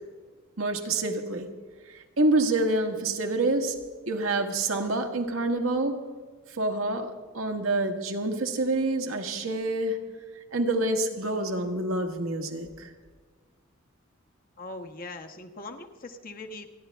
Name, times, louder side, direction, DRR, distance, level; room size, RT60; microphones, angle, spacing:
voice 1, 0.6-1.5 1.9-6.1 6.5-10.0 10.5-12.9, right 2 dB, 70° right, 1.6 m, -27 dB
voice 2, 14.6-16.7, left 2 dB, 45° left, 1.3 m, -41 dB
28.5 x 10.5 x 3.5 m
head